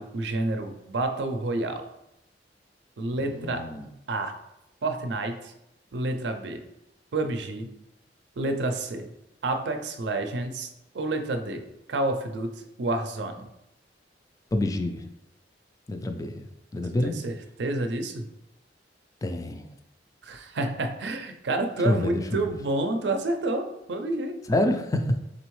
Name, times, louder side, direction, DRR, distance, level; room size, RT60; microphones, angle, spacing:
voice 1, 0.0-1.8 3.0-3.6 4.1-4.3 4.8-5.5 5.9-6.6 7.1-7.7 8.4-9.1 9.4-11.6 11.9-12.5 12.8-13.5 17.0-18.2 20.2-24.4, right 2 dB, 70° right, 6 dB, 0.5 m, -29 dB
voice 2, 3.3-3.9 14.5-15.0 15.9-16.4 16.7-17.1 19.2-19.7 21.8-22.4 24.5-25.2, left 1 dB, 20° left, 7 dB, 0.3 m, -27 dB
3.9 x 3.4 x 3.1 m, 0.86 s
head